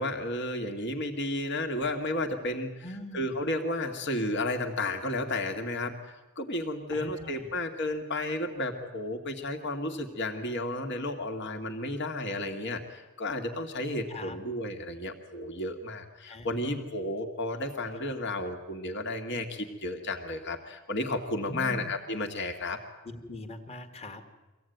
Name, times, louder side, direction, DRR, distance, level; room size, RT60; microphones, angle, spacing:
voice 1, 0.0-2.9 3.1-22.8, left 1 dB, 55° left, 5 dB, 2.2 m, -32 dB
voice 2, 2.8-3.3 6.9-7.6 14.1-14.4 16.3-16.6 21.4-21.9 23.0-24.2, left 1 dB, 30° left, 6 dB, 1.9 m, -42 dB
24.0 x 17.0 x 9.4 m, 1.1 s
head